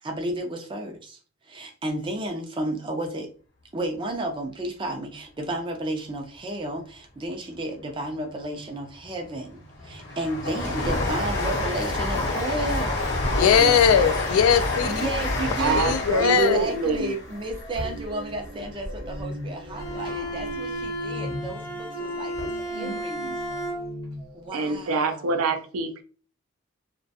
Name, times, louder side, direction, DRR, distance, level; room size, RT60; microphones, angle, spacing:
voice 1, 0.0-1.2 1.4-3.3 3.7-13.0 14.8-15.9 16.1-23.4 24.3-25.6, right 1 dB, 25° right, 3 dB, 0.4 m, -32 dB
Train, 9.0-19.2 19.6-20.6 20.8-20.9, left 2 dB, 55° left, 0.7 m, -29 dB
sound 1, 11.9-24.5, equal, 50° right, 0.8 m, -40 dB
voice 2, 13.3-14.9 15.7-16.7, left 7 dB, 85° left, 10 dB, 0.3 m, -20 dB
voice 3, 15.6-17.1 24.5-26.0, right 4 dB, 85° right, 6 dB, 0.4 m, -25 dB
Bowed string instrument, 19.7-24.1, right 1 dB, 15° left, 0.6 m, -33 dB
2.4 x 2.2 x 2.6 m, 0.39 s
head